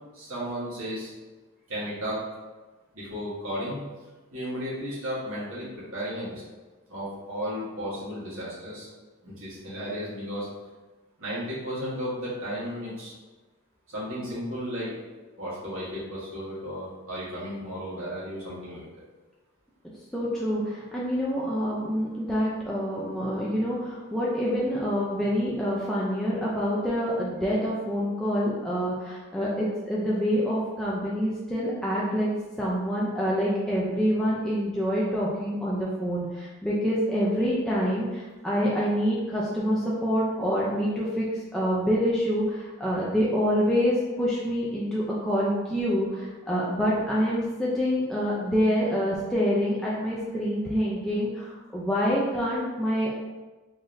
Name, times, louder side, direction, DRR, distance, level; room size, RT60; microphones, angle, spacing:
voice 1, 0.1-1.1 1.7-2.2 2.9-3.8 4.3-6.4 6.9-8.9 9.2-10.5 11.2-13.1 13.9-14.9 15.4-18.9, equal, 65° right, -9 dB, 1.3 m, -34 dB
voice 2, 20.1-32.3 32.6-41.3 41.5-53.1, equal, ahead, -7 dB, 0.4 m, -26 dB
3.8 x 2.6 x 3.2 m, 1.2 s
head